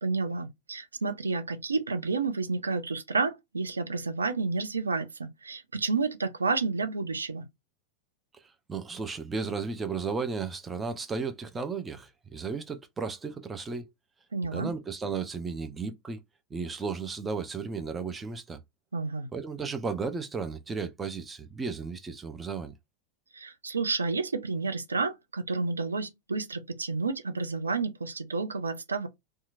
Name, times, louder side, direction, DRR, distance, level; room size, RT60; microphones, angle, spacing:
voice 1, 0.0-7.5 14.3-14.7 18.9-19.3 23.3-29.1, right 4 dB, 75° right, 0.5 m, -30 dB
voice 2, 8.7-13.9 14.5-16.2 16.5-18.6 19.3-22.7, right 4 dB, 15° right, 0.5 m, -34 dB
2.8 x 2.3 x 2.5 m
figure-of-eight pair, 90°, 0 cm